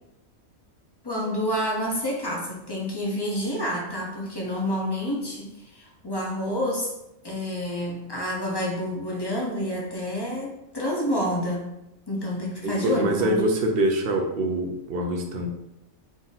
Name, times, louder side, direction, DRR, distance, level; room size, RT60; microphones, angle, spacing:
voice 1, 1.0-6.9 7.2-11.7 12.1-13.4, equal, 25° left, -3 dB, 0.5 m, -28 dB
voice 2, 12.6-15.5, right 1 dB, 55° right, 2 dB, 0.7 m, -25 dB
3.7 x 2.6 x 3.9 m, 0.89 s
omnidirectional pair, 1.4 m